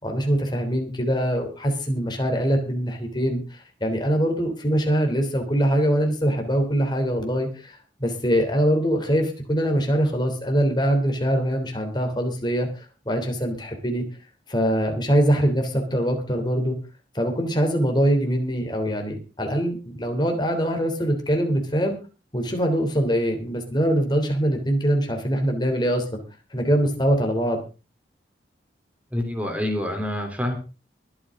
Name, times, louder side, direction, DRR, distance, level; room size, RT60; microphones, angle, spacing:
voice 1, 0.0-14.0 14.5-16.8 17.1-22.0 22.3-26.2 26.5-27.6, equal, 25° left, 4 dB, 3.2 m, -23 dB
voice 2, 29.1-30.6, left 1 dB, 10° right, 3 dB, 3.5 m, -27 dB
23.5 x 8.8 x 3.8 m, 0.33 s
head